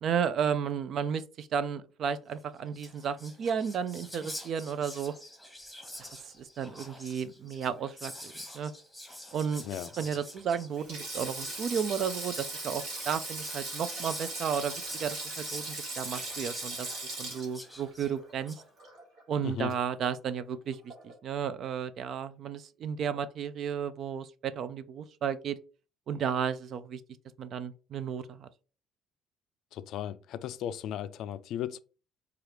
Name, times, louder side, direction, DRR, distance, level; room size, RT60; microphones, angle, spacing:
voice 1, 0.0-5.1 6.0-6.1 6.6-8.7 9.3-9.6 10.0-16.9 17.2-18.6 19.3-25.6 26.1-27.0 27.4-28.5, right 7 dB, 55° right, 0.4 m, -33 dB
Whispering, 2.4-2.5 2.7-18.6, left 1 dB, ahead, 1.1 m, -47 dB
Sink (filling or washing), 10.7-19.2 19.5-19.7 20.9-21.1, right 2 dB, 70° right, 1.7 m, -39 dB
voice 2, 29.7-31.8, left 10 dB, 65° left, 0.3 m, -36 dB
4.8 x 2.4 x 3.0 m
cardioid pair, 115°, 0 cm